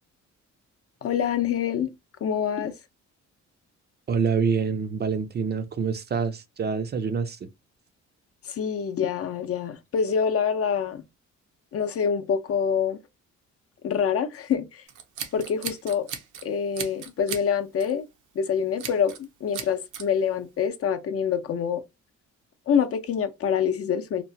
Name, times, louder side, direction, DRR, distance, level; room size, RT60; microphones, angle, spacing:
voice 1, 1.0-1.9 2.2-2.7 8.4-11.0 11.7-13.0 13.8-14.8 15.3-16.1 16.4-18.1 18.4-21.8 22.7-24.2, left 7 dB, 50° left, 0.5 m, -26 dB
voice 2, 4.1-7.5, right 5 dB, 35° right, 0.4 m, -26 dB
Scissors, 14.9-16.4 16.7-17.5 17.8-18.0 18.8-19.2 19.5-20.0, right 8 dB, 80° right, 0.6 m, -36 dB
2.9 x 2.1 x 2.6 m
cardioid pair, 90°, 30 cm